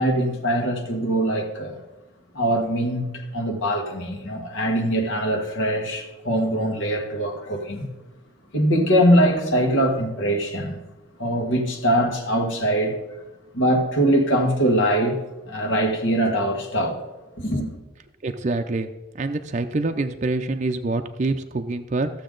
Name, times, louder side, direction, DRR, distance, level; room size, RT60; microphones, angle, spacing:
voice 1, 0.0-1.8 2.3-7.9 8.5-10.8 11.2-13.0 13.5-15.2 15.5-17.0 17.4-17.7, right 1 dB, 75° left, 1.7 m, -22 dB
voice 2, 18.2-18.9 19.2-22.1, right 2 dB, 35° right, 0.5 m, -25 dB
15.0 x 7.0 x 3.8 m
head